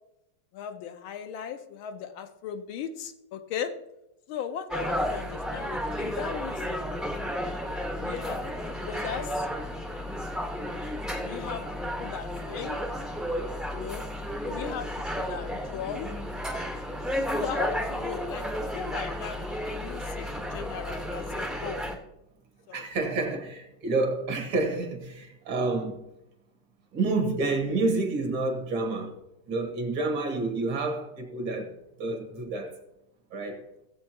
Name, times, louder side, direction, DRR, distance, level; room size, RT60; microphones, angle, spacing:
voice 1, 0.5-3.7 4.3-6.8 7.9-9.3 11.2-11.7 12.0-12.8 13.7-14.0 14.4-14.9 15.1-16.1 17.4-20.3 20.5-21.8 22.7-22.8, left 8 dB, 75° left, 1.5 m, -37 dB
sound 1, 4.7-21.9, equal, ahead, 0.4 m, -32 dB
voice 2, 22.7-26.1 26.9-29.2 29.5-32.8 33.3-33.7, right 3 dB, 75° right, 2.3 m, -29 dB
17.0 x 7.8 x 2.8 m
omnidirectional pair, 2.3 m